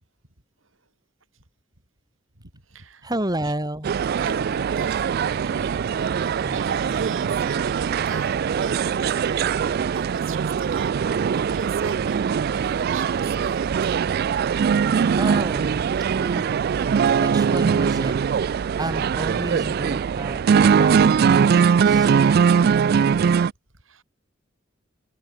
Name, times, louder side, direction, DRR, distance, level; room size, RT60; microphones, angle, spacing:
voice 1, 2.4-3.1 3.4-3.5 4.2-13.8 23.9-24.0, right 4 dB, 90° right, 5.3 m, -39 dB
voice 2, 3.0-3.9 6.4-7.3 15.2-15.8 16.1-16.5 17.2-18.1 18.8-22.1, right 1 dB, 20° right, 5.2 m, -31 dB
sound 1, 3.8-23.5, right 6 dB, 50° right, 0.3 m, -21 dB
head